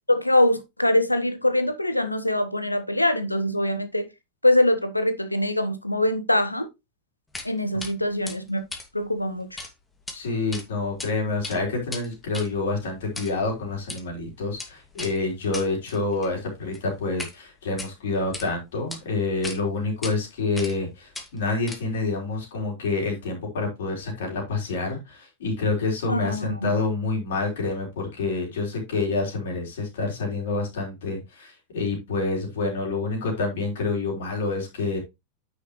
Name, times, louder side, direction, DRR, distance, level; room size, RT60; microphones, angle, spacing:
voice 1, 0.1-4.1 4.4-6.7 7.4-8.6 8.9-9.6 26.1-26.7, left 1 dB, 85° left, 1.1 m, -23 dB
sound 1, 7.3-7.5 7.8-7.9 8.3-9.7 10.0-10.2 10.5-11.1 11.4-17.4 17.7-18.5 18.9-19.0 19.4-19.6 20.0-20.1 20.6-20.9 21.1-22.1, left 3 dB, 10° left, 2.1 m, -38 dB
voice 2, 10.1-35.0, left 3 dB, 60° left, 3.8 m, -28 dB
9.5 x 6.5 x 3.1 m
figure-of-eight pair, 90°, 0 cm